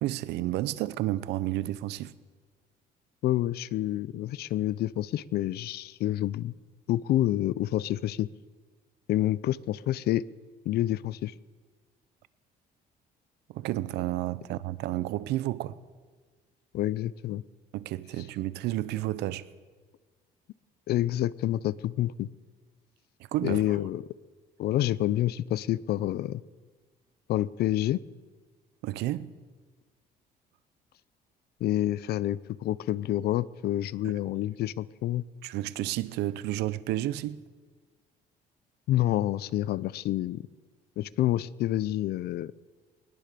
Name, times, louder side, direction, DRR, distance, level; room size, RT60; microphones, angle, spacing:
voice 1, 0.0-2.1 13.5-15.8 17.7-19.5 23.3-23.8 28.8-29.3 34.0-34.1 35.4-37.4, right 15 dB, 85° right, 0.9 m, -31 dB
voice 2, 3.2-6.5 6.9-8.3 9.1-10.2 10.6-11.3 16.7-17.4 20.9-22.3 23.4-24.0 24.6-26.4 27.3-28.0 31.6-35.2 38.9-40.4 41.0-42.5, left 14 dB, 70° left, 0.7 m, -28 dB
22.0 x 20.5 x 6.9 m
cardioid pair, 110°, 17 cm